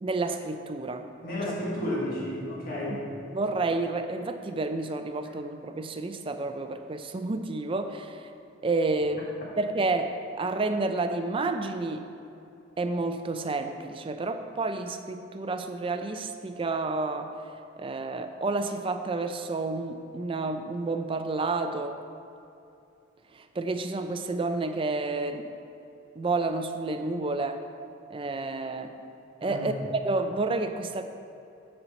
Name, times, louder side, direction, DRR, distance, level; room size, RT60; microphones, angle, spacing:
voice 1, 0.0-1.1 3.3-8.3 8.6-9.3 9.6-12.1 12.8-17.4 17.8-22.0 23.3-25.5 26.2-27.6 28.1-29.0 29.4-31.0, right 3 dB, 25° right, 8 dB, 0.4 m, -30 dB
voice 2, 1.2-3.0 29.4-29.7, left 1 dB, 50° left, -5 dB, 1.6 m, -32 dB
6.9 x 4.4 x 6.8 m, 2.7 s
head